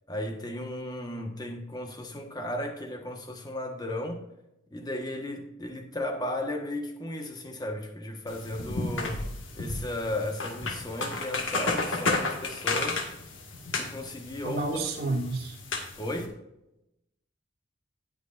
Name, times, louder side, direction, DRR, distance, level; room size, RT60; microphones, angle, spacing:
voice 1, 0.1-4.2 4.7-9.2 9.5-13.1 13.8-14.6 16.0-16.4, left 1 dB, 20° left, 1.3 m, -35 dB
sound 1, 8.3-16.3, left 3 dB, 85° left, 1.8 m, -33 dB
voice 2, 14.4-15.6, right 2 dB, 55° right, 2.5 m, -30 dB
18.5 x 6.4 x 2.5 m
head